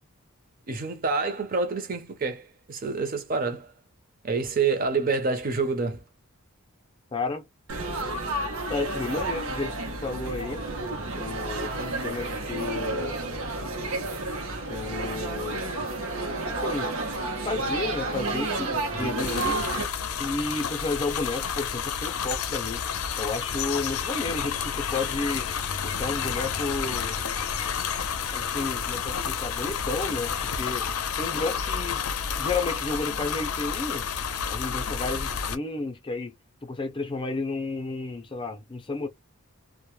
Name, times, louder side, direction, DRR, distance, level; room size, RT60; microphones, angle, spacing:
voice 1, 0.7-3.7 4.2-6.0, right 4 dB, 40° right, 0.6 m, -27 dB
voice 2, 7.1-7.4 8.7-10.6 11.1-13.2 14.7-15.6 16.5-16.9 17.4-19.7 20.2-22.8 23.2-25.5 25.8-27.2 28.3-30.9 31.2-32.0 32.4-34.0 34.5-36.3 36.6-39.1, left 3 dB, 25° left, 0.4 m, -32 dB
Laughter / Chatter / Crowd, 7.7-19.8, right 2 dB, 85° right, 0.7 m, -31 dB
sound 1, 19.2-35.5, left 7 dB, 85° left, 0.4 m, -30 dB
2.1 x 2.0 x 3.0 m
head